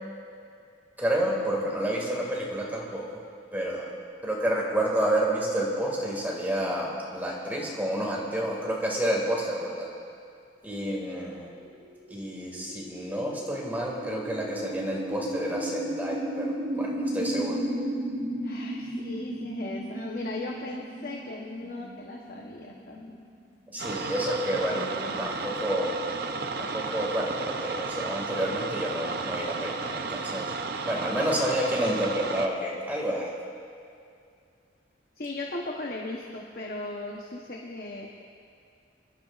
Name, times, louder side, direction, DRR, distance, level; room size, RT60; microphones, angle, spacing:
voice 1, 1.0-3.2 3.5-3.9 4.2-9.9 10.6-11.5 12.1-17.5 23.7-24.9 25.2-25.9 26.6-30.5 30.9-33.3, right 1 dB, 10° right, -3 dB, 2.0 m, -29 dB
sound 1, 11.6-23.7, right 1 dB, 85° right, 3.4 m, -35 dB
voice 2, 18.4-23.2 24.7-25.3 35.2-38.1, left 2 dB, 50° left, -1 dB, 0.9 m, -37 dB
sound 2, 23.8-32.5, right 4 dB, 55° right, 0.6 m, -33 dB
24.0 x 12.0 x 2.4 m, 2.4 s
head